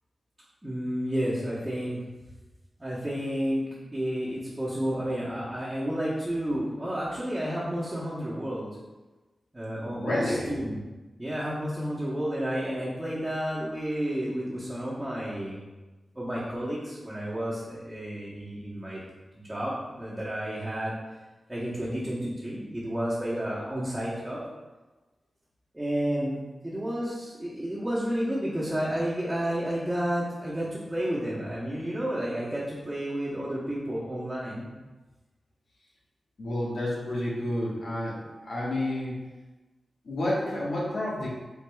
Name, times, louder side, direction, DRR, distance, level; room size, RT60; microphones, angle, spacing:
voice 1, 0.6-2.0 2.8-3.6 3.9-8.7 9.5-10.8 11.2-15.6 16.1-19.0 19.3-20.9 21.5-24.4 25.7-34.7, equal, 15° right, -9 dB, 1.0 m, -31 dB
voice 2, 10.0-10.5 36.4-39.2 40.0-41.3, left 1 dB, 80° left, -5 dB, 1.3 m, -30 dB
4.7 x 3.9 x 2.3 m, 1.2 s
wide cardioid pair, 85°, 0 cm